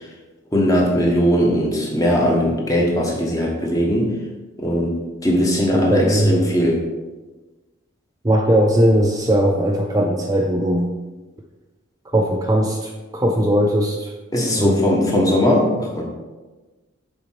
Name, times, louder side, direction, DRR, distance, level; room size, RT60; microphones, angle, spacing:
voice 1, 0.5-4.1 4.6-5.0 5.2-6.8 14.3-16.0, equal, 15° left, -2 dB, 1.4 m, -19 dB
voice 2, 5.7-6.4 8.2-10.9 12.1-14.1 14.6-14.8, equal, 15° right, 1 dB, 0.4 m, -19 dB
7.1 x 4.5 x 5.8 m, 1.2 s
head